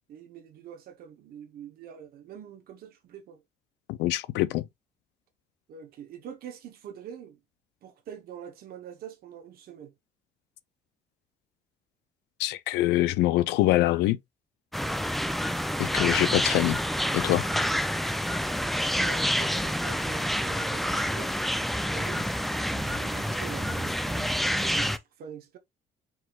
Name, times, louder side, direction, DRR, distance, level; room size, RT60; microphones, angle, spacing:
voice 1, 0.1-3.4 5.7-7.4 7.8-9.9 19.0-21.3 21.9-25.6, right 8 dB, 65° right, 0.9 m, -44 dB
voice 2, 3.9-4.6 12.4-14.2 15.8-16.8 17.1-17.5, left 16 dB, 85° left, 0.4 m, -24 dB
sound 1, 14.7-25.0, equal, ahead, 0.4 m, -28 dB
4.7 x 3.9 x 2.3 m
cardioid pair, 110°, 17 cm